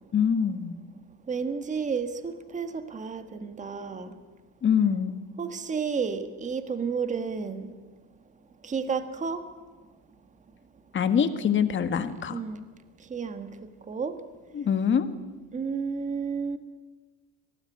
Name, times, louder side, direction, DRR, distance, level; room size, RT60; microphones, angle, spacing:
voice 1, 0.1-0.7 4.6-5.2 10.9-12.4 14.5-15.1, left 7 dB, 30° left, 10 dB, 1.7 m, -24 dB
voice 2, 1.3-4.1 5.4-7.7 8.6-9.4 12.3-12.6 13.1-13.5 13.9-14.1 15.5-16.6, right 5 dB, 20° right, 9 dB, 1.4 m, -31 dB
24.5 x 18.5 x 9.7 m, 1.3 s
cardioid pair, 160°, 41 cm